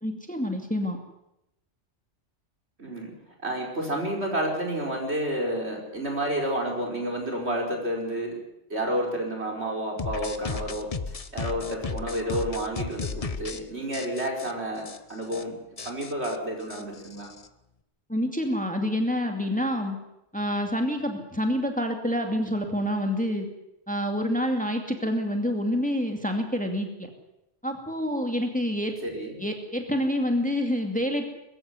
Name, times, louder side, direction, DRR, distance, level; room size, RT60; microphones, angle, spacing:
voice 1, 0.0-1.0 18.1-20.0 20.3-23.5 23.9-27.1 27.6-28.9 29.4-31.3, equal, 5° left, 4 dB, 2.3 m, -27 dB
voice 2, 2.8-3.1 3.4-8.4 8.7-11.0 11.3-15.5 15.9-17.3 29.0-29.4, right 1 dB, 65° right, 1 dB, 5.4 m, -30 dB
sound 1, 10.0-13.6 13.9-14.5 14.9-15.0 15.2-15.4 15.8-17.5, left 4 dB, 35° left, 1.0 m, -34 dB
22.5 x 14.5 x 9.5 m, 0.86 s
omnidirectional pair, 1.2 m